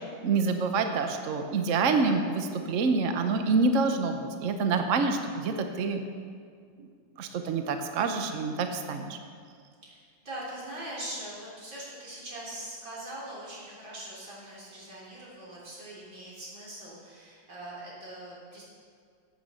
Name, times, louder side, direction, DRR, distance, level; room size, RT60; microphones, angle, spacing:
voice 1, 0.2-6.0 7.2-9.2, right 4 dB, 55° right, 6 dB, 0.9 m, -27 dB
voice 2, 9.8-18.6, right 1 dB, 75° right, -7 dB, 4.3 m, -42 dB
15.0 x 7.9 x 5.5 m, 2.1 s
omnidirectional pair, 2.1 m